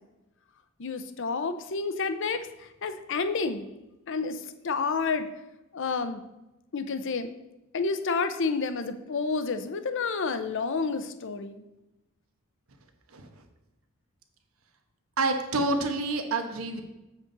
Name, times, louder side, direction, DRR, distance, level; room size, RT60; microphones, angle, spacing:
voice 1, 0.8-3.7 4.1-5.3 5.7-6.2 6.7-7.3 7.7-11.6, left 4 dB, 60° left, 10 dB, 0.6 m, -30 dB
voice 2, 15.2-16.8, right 2 dB, 75° right, 5 dB, 1.1 m, -28 dB
7.4 x 7.2 x 3.9 m, 0.97 s
head